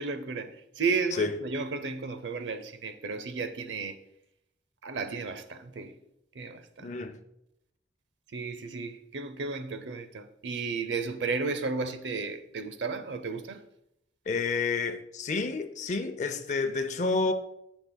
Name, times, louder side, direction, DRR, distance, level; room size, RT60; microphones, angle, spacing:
voice 1, 0.0-4.0 4.8-5.9 6.3-7.0 8.3-13.6, right 4 dB, 90° right, 0.6 m, -33 dB
voice 2, 6.8-7.2 14.3-17.3, left 4 dB, 40° left, 0.6 m, -29 dB
9.8 x 6.0 x 2.2 m
head